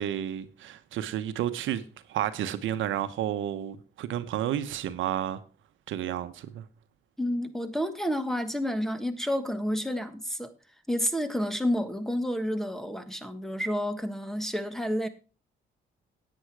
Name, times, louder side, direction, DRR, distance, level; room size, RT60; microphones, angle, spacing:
voice 1, 0.0-1.8 2.1-5.4 5.9-6.6, right 11 dB, 80° right, 1.0 m, -31 dB
voice 2, 7.2-10.5 10.9-15.1, equal, ahead, 1.4 m, -30 dB
10.0 x 8.9 x 4.7 m
cardioid pair, 90°, 20 cm